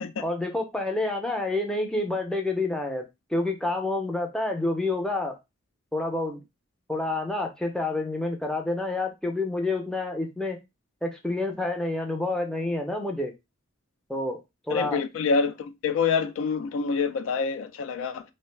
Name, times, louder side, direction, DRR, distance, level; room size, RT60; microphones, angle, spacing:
voice 1, 0.2-3.0 3.3-5.4 5.9-6.4 6.9-10.6 11.0-13.3 14.1-14.4 14.7-15.0, left 2 dB, 5° left, 0.4 m, -28 dB
voice 2, 14.7-18.2, left 5 dB, 80° left, 0.3 m, -26 dB
2.4 x 2.0 x 3.1 m
head